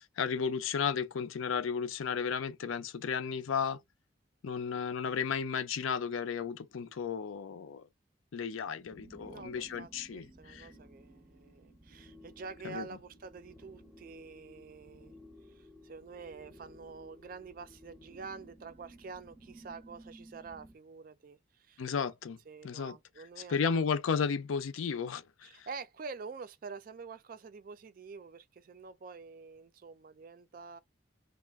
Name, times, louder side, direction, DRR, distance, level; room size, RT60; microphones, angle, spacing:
voice 1, 0.0-3.8 4.4-7.9 8.3-10.7 12.6-12.9 21.8-22.4 22.6-23.0 23.4-25.7, left 6 dB, 85° left, 0.4 m, -34 dB
sound 1, 8.7-20.8, equal, 5° right, 0.6 m, -56 dB
voice 2, 9.2-15.2 15.5-21.8 22.5-23.8 25.4-30.8, right 4 dB, 45° right, 0.3 m, -47 dB
2.4 x 2.1 x 3.4 m
head